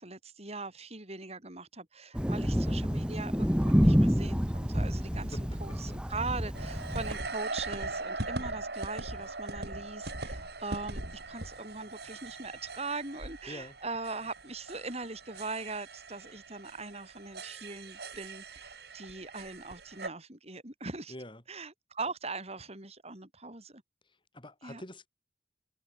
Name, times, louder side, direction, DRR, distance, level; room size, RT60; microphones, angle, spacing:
voice 1, 0.0-21.1 21.5-23.8 24.6-24.8, right 3 dB, 35° right, 5.7 m, -41 dB
Thunder, 2.1-7.2, equal, 5° right, 1.7 m, -28 dB
sound 1, 6.5-20.1, right 2 dB, 65° right, 7.3 m, -40 dB
voice 2, 21.1-21.4 24.3-25.1, left 1 dB, 30° left, 7.1 m, -44 dB
head